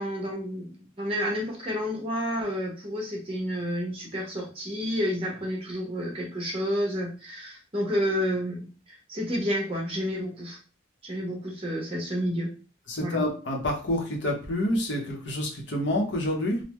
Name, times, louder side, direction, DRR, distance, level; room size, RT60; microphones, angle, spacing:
voice 1, 0.0-10.6 11.0-12.5 13.0-13.3, equal, 30° right, -2 dB, 1.0 m, -30 dB
voice 2, 12.9-16.6, left 1 dB, 65° left, 1 dB, 0.8 m, -28 dB
3.5 x 2.1 x 3.0 m, 0.35 s
head